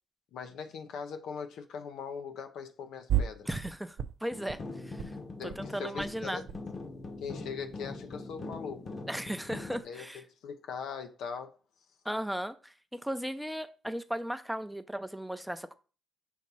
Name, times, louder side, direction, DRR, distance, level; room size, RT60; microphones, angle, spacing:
voice 1, 0.3-3.5 5.4-6.4 7.2-8.9 9.8-11.6, left 6 dB, 80° left, 0.7 m, -40 dB
sound 1, 3.1-3.7 4.0-4.6 4.9-5.1 5.4-5.6 5.9-6.6 6.9-7.9, right 10 dB, 70° right, 0.5 m, -34 dB
voice 2, 3.5-5.2 5.4-6.4 9.1-10.2 12.0-15.7, equal, ahead, 0.6 m, -36 dB
sound 2, 4.3-9.8, left 3 dB, 40° left, 1.0 m, -42 dB
6.3 x 2.9 x 5.4 m
cardioid pair, 90°, 0 cm